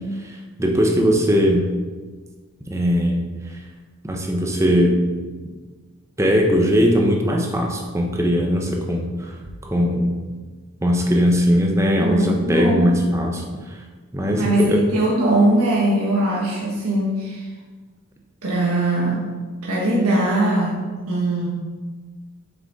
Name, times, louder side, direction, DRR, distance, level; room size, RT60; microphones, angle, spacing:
voice 1, 0.2-1.7 2.7-3.2 4.0-5.0 6.2-9.3 9.6-10.2 10.8-13.8 14.1-14.8, equal, 15° right, 1 dB, 0.8 m, -19 dB
voice 2, 12.0-13.0 14.4-17.5 18.4-19.3 19.6-21.5, right 1 dB, 90° right, -5 dB, 1.4 m, -21 dB
7.5 x 5.8 x 4.1 m, 1.4 s
head